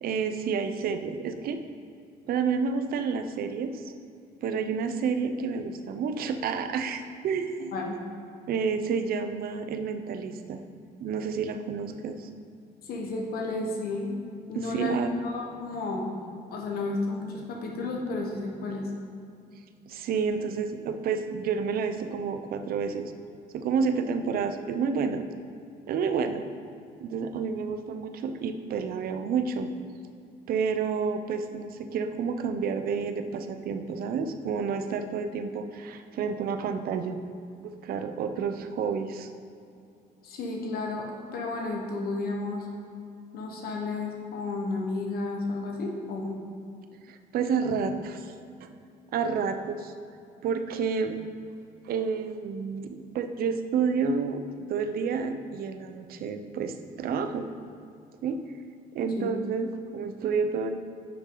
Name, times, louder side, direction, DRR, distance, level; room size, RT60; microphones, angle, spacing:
voice 1, 0.0-1.6 2.3-3.9 4.4-7.8 8.5-10.6 11.0-12.3 14.5-15.1 19.9-23.1 23.5-25.2 25.9-26.4 27.0-29.7 30.5-37.2 37.6-39.3 47.1-48.3 48.6-48.7 49.1-49.9 50.4-51.2 51.8-54.4 54.7-57.5 58.2-58.4 58.9-60.8, right 5 dB, 60° right, 7 dB, 0.7 m, -30 dB
voice 2, 12.8-14.1 14.5-18.9 40.2-41.1 41.3-42.7 43.3-46.4 59.2-59.3, left 3 dB, 65° left, 0 dB, 1.2 m, -32 dB
9.6 x 6.1 x 3.9 m, 2.5 s
cardioid pair, 110°, 17 cm